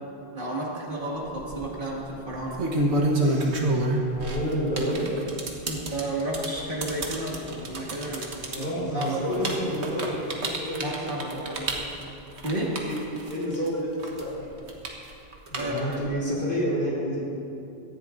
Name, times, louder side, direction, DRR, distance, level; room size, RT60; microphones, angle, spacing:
voice 1, 0.3-2.6 5.7-8.3 8.6-9.5 10.8-11.7 12.4-12.8 15.5-16.0, right 1 dB, 50° right, -4 dB, 2.4 m, -32 dB
sound 1, 1.2-1.6 2.3-13.7 14.0-16.1, right 1 dB, 85° right, 1.6 m, -28 dB
voice 2, 3.1-5.1 8.5-11.9 12.4-12.9 13.3-14.7 15.5-17.2, equal, 55° left, -6 dB, 3.8 m, -30 dB
18.0 x 14.0 x 2.6 m, 2.6 s
omnidirectional pair, 1.1 m